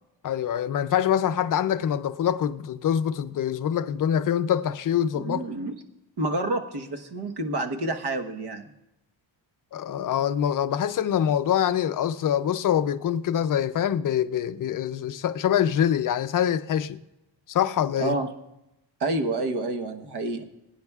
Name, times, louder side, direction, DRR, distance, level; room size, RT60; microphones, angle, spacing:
voice 1, 0.2-5.5 9.7-17.0 17.5-18.2, left 9 dB, 45° left, 0.5 m, -25 dB
voice 2, 5.1-5.7 6.2-8.6 18.0-18.3 19.0-20.4, right 2 dB, 55° right, 1.2 m, -28 dB
22.0 x 9.8 x 2.3 m
wide cardioid pair, 160°, 47 cm